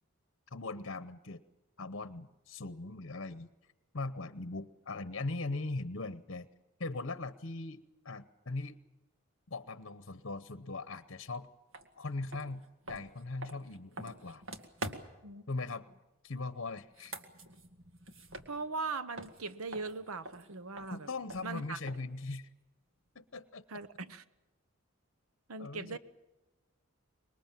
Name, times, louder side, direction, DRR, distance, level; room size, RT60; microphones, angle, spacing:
voice 1, 0.5-1.4 1.8-3.5 3.9-6.5 6.8-8.8 9.5-11.5 12.0-14.4 15.5-15.9 16.2-17.1 20.9-22.5 23.1-23.6 25.6-26.0, left 3 dB, 60° left, 13 dB, 0.9 m, -40 dB
sound 1, 11.7-11.9 12.3-15.3 16.8-18.9 19.2-22.2, right 2 dB, 70° right, 2.1 m, -46 dB
voice 2, 18.5-21.1 21.4-21.8 23.7-24.2 25.5-26.0, right 4 dB, 85° right, 13 dB, 0.9 m, -40 dB
25.5 x 22.0 x 7.5 m, 1.0 s
head